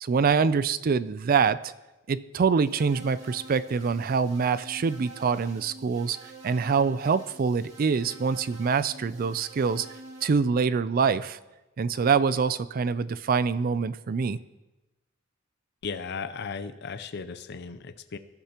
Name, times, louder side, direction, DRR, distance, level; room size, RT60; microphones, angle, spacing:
voice 1, 0.0-1.7 2.1-6.2 6.4-9.9 10.2-11.4 11.8-14.4, right 5 dB, 45° right, 16 dB, 0.4 m, -25 dB
sound 1, 2.6-10.3, right 2 dB, 80° right, 2.2 m, -47 dB
voice 2, 15.8-18.2, left 5 dB, 55° left, 11 dB, 0.6 m, -36 dB
20.5 x 12.0 x 2.9 m, 1.1 s
head